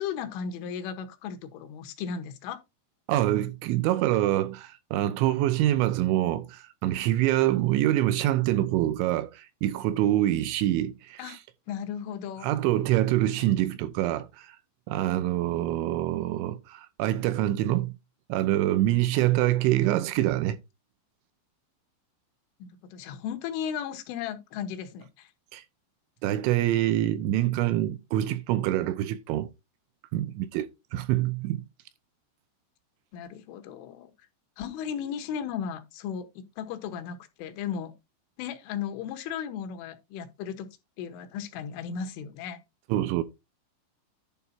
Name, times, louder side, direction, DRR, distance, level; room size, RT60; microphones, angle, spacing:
voice 1, 0.0-2.6 11.2-11.4 11.7-12.5 13.4-13.8 22.6-25.3 33.1-34.1 34.6-37.9 38.4-40.7 41.0-42.6, left 8 dB, 80° left, 3.5 m, -35 dB
voice 2, 3.1-11.4 12.4-14.6 14.9-17.9 18.3-20.6 25.5-25.6 26.2-29.5 30.1-31.6 42.9-43.2, right 14 dB, 80° right, 3.0 m, -25 dB
11.0 x 4.6 x 4.2 m
omnidirectional pair, 5.7 m